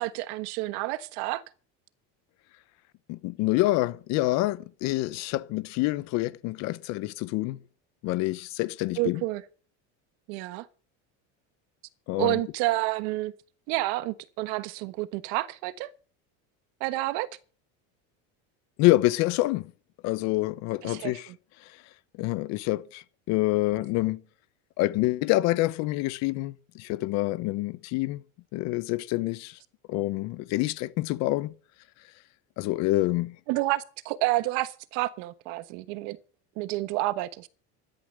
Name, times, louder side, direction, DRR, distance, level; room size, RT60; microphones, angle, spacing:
voice 1, 0.0-1.4 9.0-9.4 10.3-10.7 12.2-13.3 13.7-15.9 16.8-17.3 20.8-21.3 33.5-36.2 36.6-37.5, right 18 dB, 70° right, 1.2 m, -29 dB
voice 2, 3.1-7.6 8.0-9.2 12.1-12.4 18.8-19.7 20.0-21.3 21.6-21.7 22.2-24.2 24.8-28.2 28.5-29.6 29.9-31.5 32.6-33.4, left 18 dB, 50° left, 0.9 m, -27 dB
14.0 x 11.5 x 6.5 m
cardioid pair, 175°, 34 cm